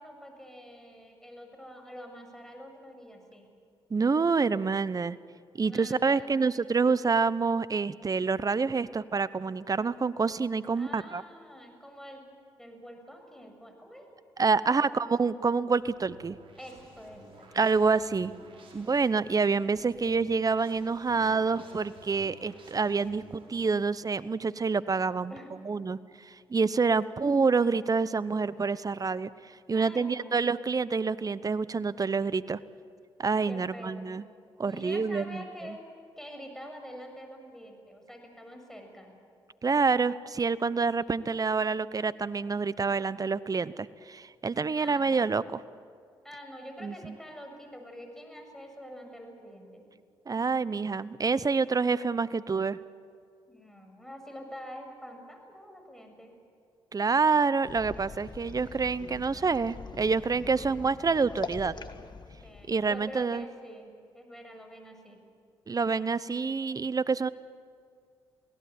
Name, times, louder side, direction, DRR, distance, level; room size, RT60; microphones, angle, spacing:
voice 1, 0.0-3.5 5.6-6.3 10.7-12.2 12.6-14.1 15.0-15.2 16.6-17.7 25.3-25.5 29.7-30.4 33.5-34.2 34.7-35.9 36.2-39.1 44.7-45.4 46.2-49.9 53.5-56.3 62.4-65.2, equal, 5° left, 4 dB, 7.2 m, -46 dB
voice 2, 3.9-5.2 5.6-11.2 14.4-16.4 17.5-18.3 18.7-25.3 25.6-29.3 29.7-32.6 33.2-34.2 34.6-35.8 39.6-45.6 46.8-47.1 50.3-52.8 56.9-61.7 62.7-63.5 65.7-67.3, right 4 dB, 35° right, 17 dB, 0.9 m, -27 dB
sound 1, 15.7-23.7, right 2 dB, 55° right, 6.6 m, -53 dB
sound 2, 57.6-63.4, left 4 dB, 40° left, 1.7 m, -43 dB
27.5 x 17.5 x 8.7 m, 2.2 s
supercardioid pair, 50°, 11 cm